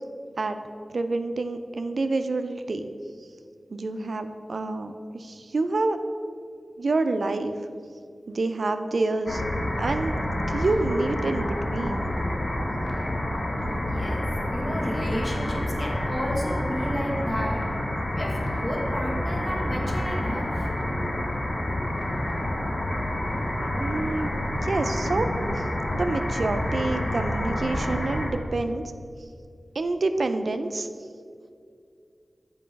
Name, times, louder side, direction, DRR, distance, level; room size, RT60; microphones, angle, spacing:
voice 1, 0.9-2.9 3.7-6.0 6.8-7.5 8.3-9.4 9.8-10.2 10.5-12.1 23.8-24.3 24.6-25.3 25.6-25.7 25.9-28.8 29.7-30.9, right 3 dB, 75° right, 8 dB, 0.4 m, -27 dB
sound 1, 9.3-28.3, left 1 dB, 50° left, 1.0 m, -28 dB
voice 2, 13.9-17.6 18.1-20.7, equal, 25° left, -2 dB, 1.4 m, -32 dB
7.6 x 4.7 x 5.2 m, 2.3 s
wide cardioid pair, 75°, 0 cm